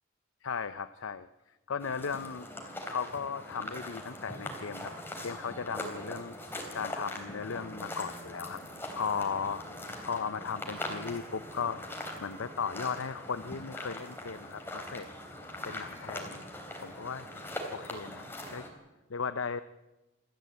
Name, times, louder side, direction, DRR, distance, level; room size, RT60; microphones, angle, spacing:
voice 1, 0.4-1.3 1.7-6.4 6.7-8.6 8.9-11.8 12.2-15.1 15.6-16.4 16.8-17.3 17.7-18.2 18.5-18.7 19.1-19.6, left 6 dB, 70° left, 12 dB, 0.6 m, -36 dB
sound 1, 1.8-18.7, left 1 dB, 10° left, 3.6 m, -41 dB
27.5 x 13.0 x 8.2 m, 1.1 s
head